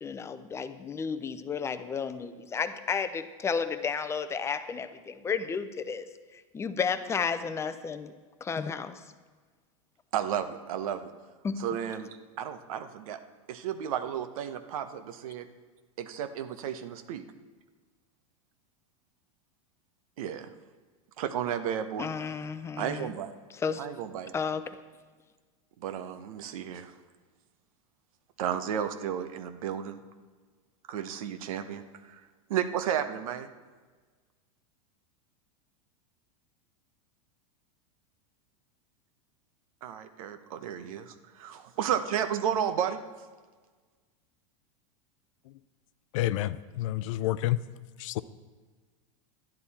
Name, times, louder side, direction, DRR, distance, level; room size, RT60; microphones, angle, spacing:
voice 1, 0.0-6.0 6.3-8.1 8.4-9.0 11.4-11.6 22.0-23.1 23.5-23.9 24.3-24.8, left 6 dB, 15° left, 11 dB, 0.5 m, -32 dB
voice 2, 10.1-11.1 11.6-13.2 13.5-15.5 16.0-17.2 20.2-20.5 21.2-22.1 22.8-23.3 23.8-24.3 25.8-26.9 28.4-30.0 30.9-32.2 32.5-33.5 39.8-43.0, right 9 dB, 75° right, 9 dB, 0.9 m, -33 dB
voice 3, 46.1-47.6 48.0-48.2, left 15 dB, 65° left, 16 dB, 0.5 m, -29 dB
12.0 x 10.5 x 4.2 m, 1.4 s
supercardioid pair, 130°, 18 cm